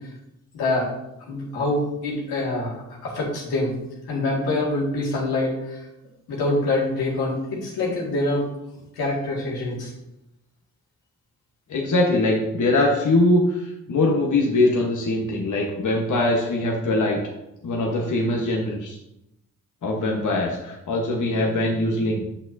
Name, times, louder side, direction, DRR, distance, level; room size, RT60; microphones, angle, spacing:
voice 1, 0.5-0.9 1.3-3.7 4.1-5.8 6.3-8.5 9.0-9.9, left 2 dB, 85° left, -4 dB, 2.2 m, -25 dB
voice 2, 11.7-17.2 17.6-19.0 19.8-22.2, left 2 dB, 55° left, -1 dB, 1.3 m, -22 dB
8.0 x 6.0 x 2.8 m, 0.87 s
supercardioid pair, 50°, 36 cm